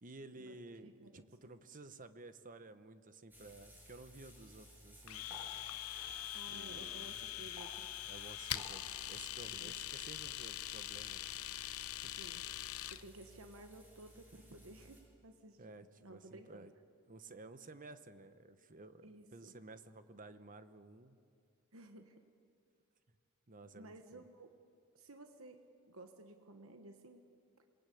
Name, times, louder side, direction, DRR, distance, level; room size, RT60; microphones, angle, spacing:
voice 1, 0.0-5.3 6.5-7.1 8.0-11.3 12.0-12.2 15.6-16.7 17.1-19.1 19.3-21.2 23.1-23.2 23.5-24.2, right 2 dB, 40° right, 11 dB, 1.1 m, -54 dB
voice 2, 0.8-1.3 6.3-8.0 9.5-9.7 12.1-12.4 12.9-16.7 19.0-19.5 21.7-22.2 23.7-24.6 24.9-27.2, right 1 dB, 65° right, 6 dB, 1.4 m, -55 dB
sound 1, 3.3-15.0, equal, 10° right, 6.5 m, -58 dB
Domestic sounds home sounds, 5.1-13.0, left 13 dB, 80° left, 0.8 m, -43 dB
sound 2, 6.1-11.6, left 1 dB, 55° left, 4.2 m, -69 dB
27.5 x 21.0 x 8.6 m, 2.3 s
head